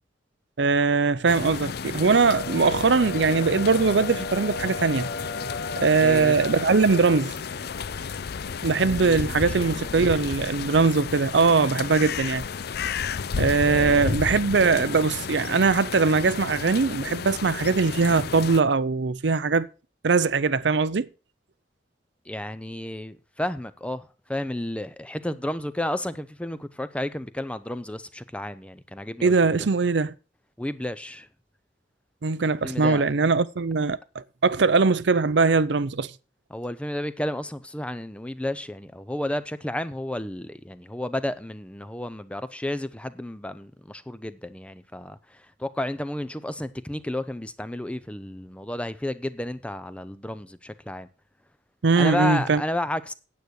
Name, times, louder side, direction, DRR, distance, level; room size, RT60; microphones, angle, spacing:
voice 1, 0.6-5.1 5.8-7.4 8.6-12.4 13.4-19.7 20.0-21.1 29.2-30.1 32.2-36.1 51.8-52.6, right 4 dB, 65° right, 0.6 m, -21 dB
sound 1, 1.3-18.6, left 6 dB, 60° left, 0.5 m, -32 dB
sound 2, 1.9-7.2, left 2 dB, 80° left, 1.2 m, -35 dB
voice 2, 6.0-6.4 8.8-10.1 13.6-14.1 22.3-29.7 30.6-31.3 32.6-33.0 36.5-45.2 45.6-51.1 52.0-53.1, left 1 dB, 5° left, 0.6 m, -32 dB
9.2 x 8.5 x 6.4 m
head